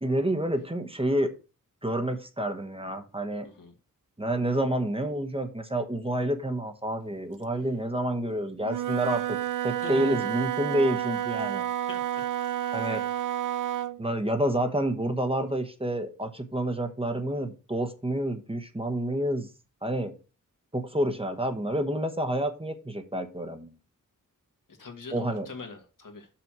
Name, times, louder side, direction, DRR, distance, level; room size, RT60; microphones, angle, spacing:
voice 1, 0.0-1.3 1.8-3.5 4.2-9.4 9.6-11.7 12.7-13.0 14.0-19.5 19.8-20.1 20.7-23.7 25.1-25.5, right 1 dB, 15° right, 1.1 m, -29 dB
Wind instrument woodwind instrument, 8.6-14.0, right 11 dB, 70° right, 0.5 m, -30 dB
voice 2, 9.8-10.3 11.9-12.2 12.7-12.8 24.7-26.3, left 4 dB, 75° left, 1.8 m, -42 dB
6.0 x 5.8 x 6.1 m
wide cardioid pair, 105°, 33 cm